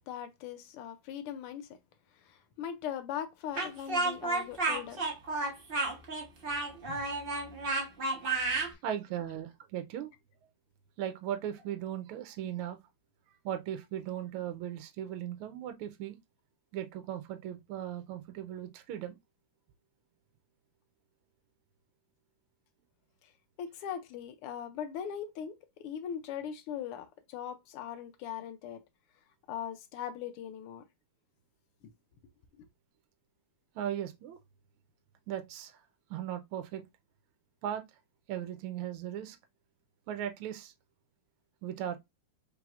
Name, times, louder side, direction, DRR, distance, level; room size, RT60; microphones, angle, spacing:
voice 1, 0.1-1.7 2.2-5.0 6.9-7.0 8.6-8.7 23.2-23.3 23.6-28.8 29.5-30.8, left 9 dB, 85° left, 1.5 m, -40 dB
Speech, 3.6-8.7, right 3 dB, 45° right, 0.7 m, -31 dB
voice 2, 8.8-10.1 11.0-12.8 13.4-16.1 16.7-19.1 33.7-34.4 35.3-35.7 36.1-36.8 37.6-37.8 38.3-39.4 40.1-40.7 41.6-42.0, right 10 dB, 80° right, 1.5 m, -37 dB
4.8 x 3.4 x 2.4 m
omnidirectional pair, 2.4 m